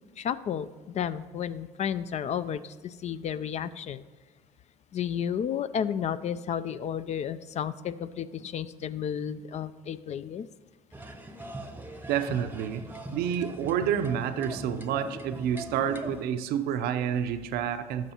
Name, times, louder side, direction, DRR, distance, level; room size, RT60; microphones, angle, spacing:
voice 1, 0.2-4.0 4.9-10.5, left 8 dB, 45° left, 14 dB, 0.4 m, -32 dB
sound 1, 10.9-16.2, right 1 dB, 10° right, 0.8 m, -41 dB
voice 2, 12.1-12.8 13.1-18.1, right 9 dB, 70° right, 9 dB, 0.6 m, -29 dB
12.0 x 6.1 x 2.9 m, 1.4 s
hypercardioid pair, 65°, 17 cm